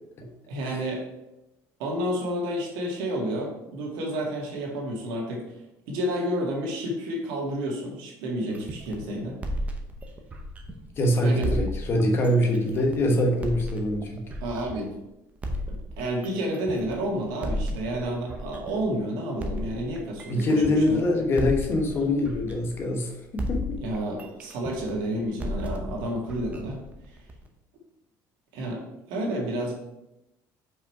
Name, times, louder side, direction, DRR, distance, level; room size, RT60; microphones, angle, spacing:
voice 1, 0.5-1.0 1.8-5.4 5.9-9.4 11.2-11.6 14.4-14.9 15.7-21.0 23.8-26.8 27.1-27.2 28.5-28.8 29.1-29.7, right 1 dB, 85° right, -1 dB, 2.0 m, -30 dB
sound 1, 8.5-11.0 11.4-14.9 15.4-19.0 19.4-23.1 23.4-27.5, equal, 20° right, 0.7 m, -34 dB
voice 2, 11.0-14.2 20.3-23.7, left 1 dB, 30° left, 2 dB, 1.2 m, -24 dB
5.4 x 5.0 x 4.7 m, 0.92 s
cardioid pair, 165°, 8 cm